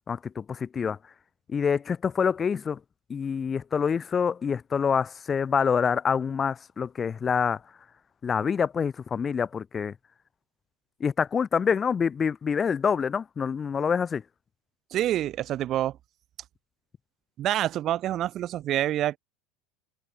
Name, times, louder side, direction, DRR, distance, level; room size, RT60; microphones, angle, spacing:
voice 1, 0.1-1.0 1.5-2.8 3.1-7.6 8.2-9.9 11.0-14.2, left 6 dB, 25° left, 0.5 m, -26 dB
voice 2, 14.9-15.9 17.4-19.2, right 12 dB, 40° right, 1.1 m, -27 dB
figure-of-eight pair, 75°, 0 cm